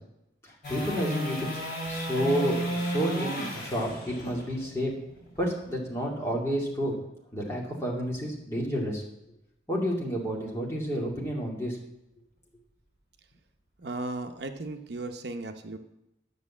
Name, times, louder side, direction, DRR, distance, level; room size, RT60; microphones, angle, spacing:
voice 1, 0.4-1.5 1.9-4.9 5.4-7.0 7.3-9.0 9.7-11.8, equal, 15° left, -3 dB, 2.5 m, -30 dB
sound 1, 0.6-6.8 13.3-13.4, right 1 dB, 50° left, 5.4 m, -34 dB
voice 2, 13.8-15.8, right 2 dB, 70° right, 6 dB, 0.8 m, -36 dB
11.0 x 6.7 x 7.3 m, 0.88 s
head